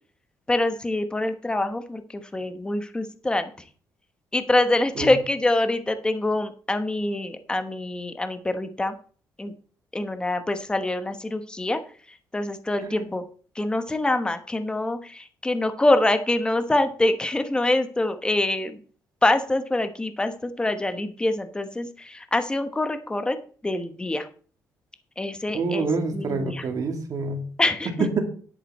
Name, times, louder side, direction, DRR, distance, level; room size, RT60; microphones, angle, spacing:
voice 1, 0.5-3.5 4.3-8.9 9.4-9.5 9.9-11.8 12.3-13.2 13.6-18.8 19.2-23.4 23.6-24.3 25.2-26.7 27.6-28.1, left 2 dB, 10° left, 9 dB, 1.0 m, -25 dB
voice 2, 25.5-27.4 28.2-28.3, right 4 dB, 50° right, 4 dB, 2.4 m, -27 dB
10.0 x 8.9 x 4.3 m, 0.43 s
cardioid pair, 125°, 7 cm